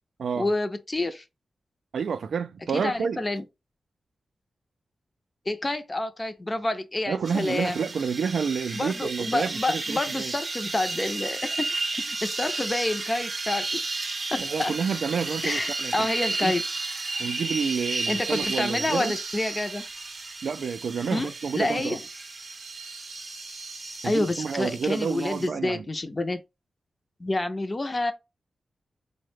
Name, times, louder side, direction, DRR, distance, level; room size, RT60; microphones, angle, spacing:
voice 1, 0.4-1.2 2.7-3.4 5.5-7.8 8.7-14.0 14.3-14.7 15.4-16.6 18.1-19.9 21.1-21.3 21.6-22.0 24.0-26.4 27.2-28.1, left 2 dB, 25° left, 0.4 m, -28 dB
voice 2, 1.9-3.2 7.1-10.3 14.4-15.9 16.4-16.5 17.2-19.1 20.4-22.0 24.0-25.8, right 6 dB, 85° right, 0.3 m, -29 dB
sound 1, 7.3-25.5, right 3 dB, 45° right, 0.6 m, -33 dB
4.6 x 2.1 x 3.2 m
wide cardioid pair, 110°, 0 cm